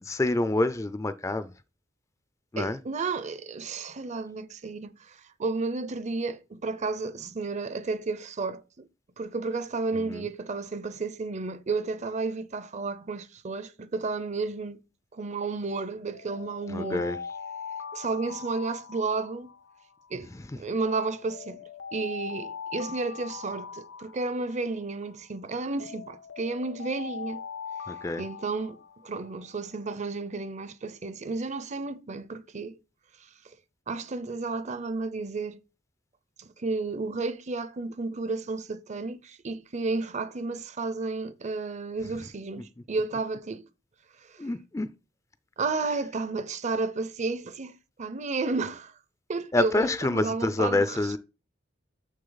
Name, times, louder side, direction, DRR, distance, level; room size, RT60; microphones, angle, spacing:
voice 1, 0.0-1.5 2.5-2.8 9.9-10.3 16.7-17.2 20.3-20.6 27.9-28.2 44.4-44.9 49.5-51.2, left 2 dB, 15° left, 0.4 m, -27 dB
voice 2, 2.6-8.9 9.2-14.8 15.1-17.1 17.9-19.5 20.1-20.3 20.5-27.4 28.2-32.8 33.9-35.6 36.4-43.7 45.6-48.9 49.3-51.0, right 3 dB, 40° right, 0.6 m, -32 dB
Alarm, 16.1-20.3 20.8-25.3 25.8-29.6, left 6 dB, 75° left, 0.7 m, -41 dB
6.6 x 6.4 x 3.9 m
head